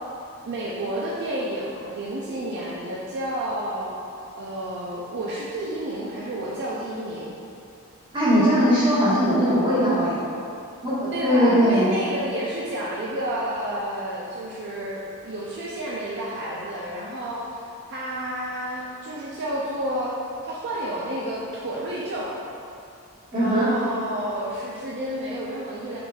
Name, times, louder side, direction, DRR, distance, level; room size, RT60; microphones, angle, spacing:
voice 1, 0.4-4.0 4.4-7.4 11.1-20.1 20.4-22.3 23.3-26.0, right 1 dB, 55° right, -6 dB, 0.4 m, -30 dB
voice 2, 8.1-10.2 10.8-11.9 23.3-23.7, equal, 20° right, -12 dB, 1.4 m, -20 dB
4.1 x 3.7 x 2.3 m, 2.5 s
head